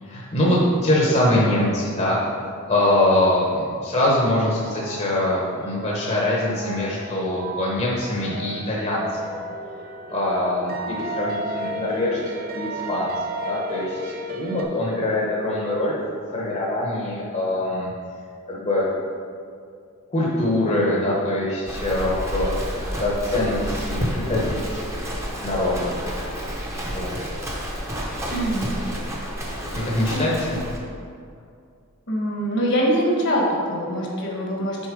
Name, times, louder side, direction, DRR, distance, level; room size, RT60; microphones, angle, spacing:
voice 1, 0.0-2.2 2.7-9.4 10.1-13.1 13.5-15.9 16.3-17.9 18.5-18.9 20.1-24.9 25.4-25.9 26.8-27.1 29.7-30.6, left 1 dB, 30° left, -5 dB, 1.0 m, -23 dB
sound 1, 4.3-14.6, right 1 dB, 40° right, 0.6 m, -34 dB
Livestock farm animals working animals, 21.7-30.8, equal, 15° right, 0.9 m, -30 dB
voice 2, 28.3-28.7 30.1-30.2 30.5-30.6 32.1-34.8, equal, 55° left, -2 dB, 1.3 m, -23 dB
6.5 x 4.1 x 5.2 m, 2.3 s
head